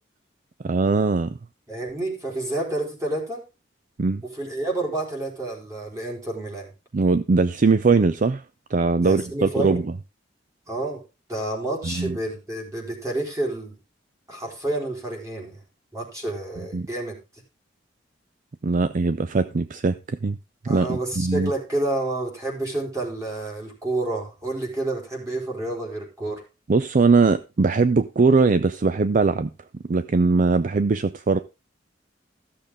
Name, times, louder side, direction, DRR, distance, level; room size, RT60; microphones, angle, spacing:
voice 1, 0.6-1.3 4.0-4.2 6.9-8.4 8.7-9.8 11.8-12.2 16.7-16.9 18.6-20.4 20.6-21.5 26.7-29.5 29.9-31.4, right 4 dB, 45° right, 0.5 m, -21 dB
voice 2, 1.7-3.4 4.3-6.7 9.0-9.8 10.7-11.0 11.3-13.8 14.3-15.6 15.9-17.2 20.7-26.4, right 2 dB, 15° right, 4.0 m, -29 dB
14.5 x 6.9 x 3.7 m
head